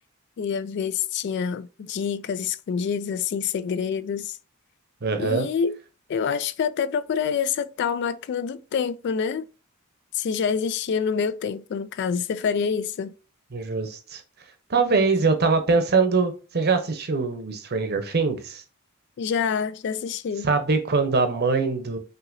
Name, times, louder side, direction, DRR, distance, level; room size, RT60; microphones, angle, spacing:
voice 1, 0.4-4.4 5.2-5.8 6.1-9.4 10.1-13.1 19.2-20.5, left 6 dB, 55° left, 0.3 m, -27 dB
voice 2, 5.0-5.5 13.5-14.2 14.7-18.6 20.4-22.0, right 4 dB, 50° right, 0.8 m, -23 dB
5.9 x 2.8 x 2.6 m
head